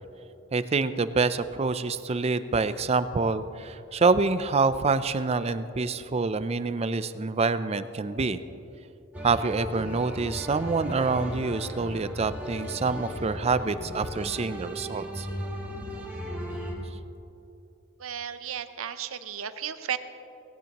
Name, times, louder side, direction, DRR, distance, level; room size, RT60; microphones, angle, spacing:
voice 1, 0.5-8.4 9.2-15.3, right 4 dB, 30° right, 13 dB, 0.5 m, -26 dB
sound 1, 9.1-16.7, equal, 10° right, 2.3 m, -36 dB
voice 2, 18.0-20.0, right 9 dB, 90° right, 11 dB, 0.7 m, -34 dB
18.0 x 16.5 x 3.0 m, 2.9 s
head